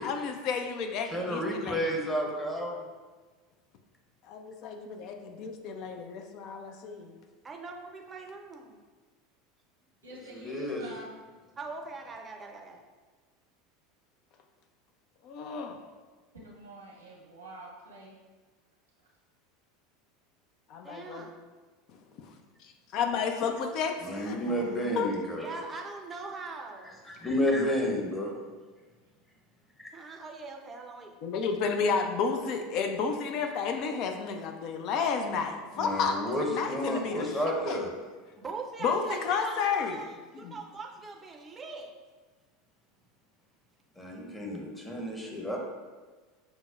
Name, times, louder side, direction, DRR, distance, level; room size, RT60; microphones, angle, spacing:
voice 1, 0.0-1.9 4.3-7.1 15.2-15.8 20.7-21.2 22.2-22.3 22.6-24.6 24.9-25.1 31.2-36.2 36.5-37.4 37.7-37.8 38.8-40.0 40.3-40.5, left 5 dB, 50° left, 5 dB, 0.4 m, -31 dB
voice 2, 1.0-2.8 10.3-10.9 24.0-25.5 27.1-28.4 29.8-29.9 35.7-37.9 44.0-45.6, equal, 10° left, -1 dB, 0.8 m, -31 dB
voice 3, 7.4-8.8 11.6-12.8 20.8-21.5 25.3-27.0 29.9-31.2 38.4-41.9, right 3 dB, 25° right, 2 dB, 0.5 m, -42 dB
voice 4, 10.0-11.3 16.3-18.1, right 1 dB, 90° right, -4 dB, 1.0 m, -47 dB
5.9 x 2.0 x 2.4 m, 1.3 s
figure-of-eight pair, 80°, 0 cm